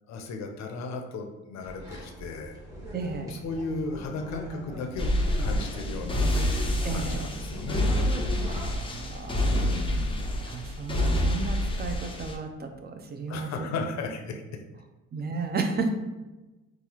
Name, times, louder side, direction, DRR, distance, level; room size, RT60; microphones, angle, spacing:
voice 1, 0.1-2.6 3.2-5.1 5.4-6.3 6.9-8.0 9.5-10.4 13.3-14.4, left 3 dB, 65° left, 4 dB, 0.6 m, -35 dB
sound 1, 1.6-8.7, equal, 10° right, 1.2 m, -39 dB
voice 2, 2.9-3.4 6.8-7.3 8.4-9.5 10.4-13.7 15.1-15.9, right 4 dB, 35° right, 5 dB, 0.5 m, -33 dB
sound 2, 5.0-12.4, left 1 dB, 20° left, 0.4 m, -27 dB
3.9 x 2.4 x 2.9 m, 1.1 s
cardioid pair, 90°, 30 cm